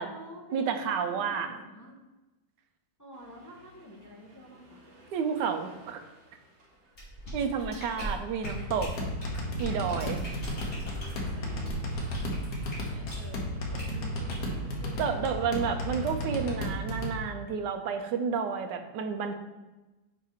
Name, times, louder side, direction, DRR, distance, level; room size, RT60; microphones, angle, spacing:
voice 1, 0.0-2.0 3.0-4.8 12.9-15.1, equal, 25° left, -3 dB, 0.4 m, -49 dB
voice 2, 0.5-1.6 5.1-6.0 7.3-8.9 9.6-10.2 15.0-19.3, right 6 dB, 75° right, 6 dB, 1.3 m, -30 dB
Accelerating revving vroom, 3.1-16.6, right 2 dB, 40° right, 1.2 m, -52 dB
sound 1, 6.9-13.3 13.8-14.0 14.3-14.5, right 1 dB, 45° left, 2.5 m, -40 dB
sound 2, 8.4-17.2, equal, 65° left, 1.6 m, -34 dB
5.7 x 4.9 x 4.4 m, 1.1 s
omnidirectional pair, 1.9 m